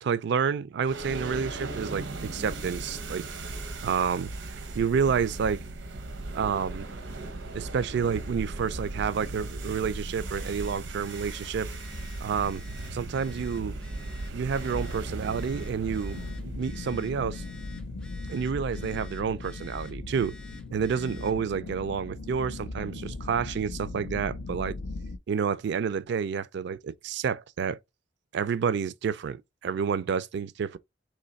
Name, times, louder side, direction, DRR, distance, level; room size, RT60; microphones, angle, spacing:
voice 1, 0.0-2.0 2.3-3.3 3.8-5.6 6.3-6.9 7.5-11.7 12.2-12.6 12.9-13.7 14.3-16.2 16.6-17.4 18.3-20.3 20.7-24.8 25.3-27.8 28.3-30.8, right 6 dB, 65° right, 0.3 m, -29 dB
sound 1, 0.8-18.2, right 2 dB, 90° right, 0.7 m, -37 dB
Telephone, 10.2-21.4, left 2 dB, 5° left, 0.4 m, -52 dB
sound 2, 16.1-25.2, left 3 dB, 90° left, 0.6 m, -38 dB
3.3 x 3.0 x 4.0 m
head